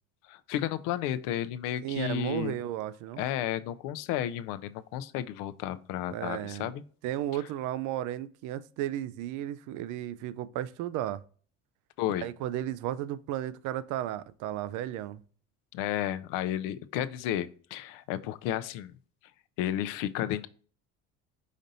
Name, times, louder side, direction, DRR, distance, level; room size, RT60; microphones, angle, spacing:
voice 1, 0.2-2.6 3.2-6.8 12.0-12.3 15.7-19.0 19.6-20.5, left 11 dB, 75° left, 0.5 m, -32 dB
voice 2, 1.8-3.2 6.1-6.7 7.0-11.2 12.2-15.2, right 12 dB, 65° right, 0.5 m, -34 dB
5.2 x 3.9 x 2.7 m
cardioid pair, 115°, 33 cm